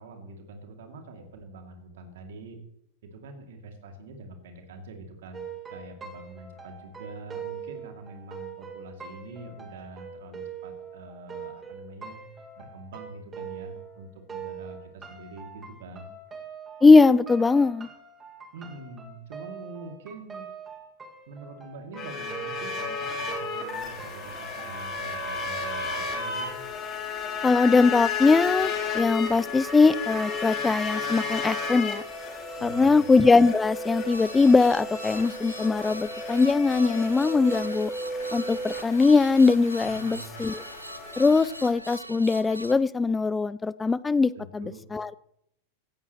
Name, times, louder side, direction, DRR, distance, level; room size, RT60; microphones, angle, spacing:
voice 1, 0.0-2.6 3.1-12.2 12.6-16.1 18.5-20.5 21.3-26.5 32.6-33.1 39.8-40.3 44.3-44.8, right 3 dB, 55° right, 4 dB, 2.6 m, -44 dB
sound 1, 5.3-14.0 14.3-25.0, right 6 dB, 15° right, 2.0 m, -42 dB
voice 2, 16.8-17.9 27.4-32.0 32.6-37.9 38.3-40.6 41.2-45.1, left 4 dB, 10° left, 20 dB, 0.4 m, -21 dB
sound 2, 22.0-41.7, left 4 dB, 30° left, 2.8 m, -33 dB
sound 3, 34.0-42.7, right 1 dB, 85° right, 0.7 m, -42 dB
17.0 x 14.5 x 3.1 m, 0.78 s
figure-of-eight pair, 90°, 0 cm